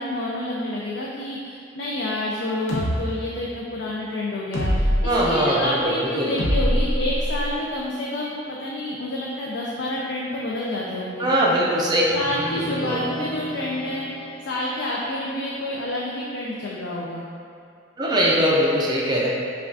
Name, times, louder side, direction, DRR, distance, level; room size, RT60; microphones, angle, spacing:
voice 1, 0.0-11.3 12.1-14.1 14.5-17.2, left 1 dB, 60° left, -4 dB, 0.4 m, -28 dB
sound 1, 2.7-3.0 4.5-5.1 6.4-7.5, equal, 85° left, 0.8 m, -22 dB
voice 2, 5.0-6.3 11.2-12.0 12.8-13.0 18.0-19.3, equal, 20° right, -4 dB, 0.5 m, -21 dB
sound 2, 12.1-14.9, equal, 10° left, 0.8 m, -35 dB
5.5 x 2.3 x 2.5 m, 2.5 s
head